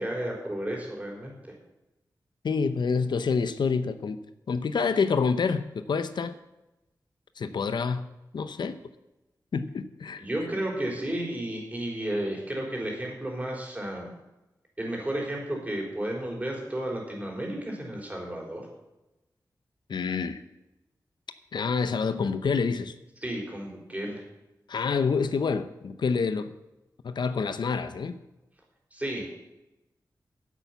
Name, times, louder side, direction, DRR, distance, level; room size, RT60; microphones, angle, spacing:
voice 1, 0.0-1.4 10.2-14.1 14.8-18.7 23.2-24.2 28.9-29.3, right 1 dB, 20° right, 4.1 m, -32 dB
voice 2, 2.4-4.2 4.5-6.4 7.4-8.1 8.3-8.8 9.5-10.2 19.9-20.4 21.5-22.9 24.7-26.5 27.0-28.2, left 5 dB, 85° left, 0.7 m, -27 dB
10.0 x 8.4 x 8.1 m
wide cardioid pair, 95°, 7 cm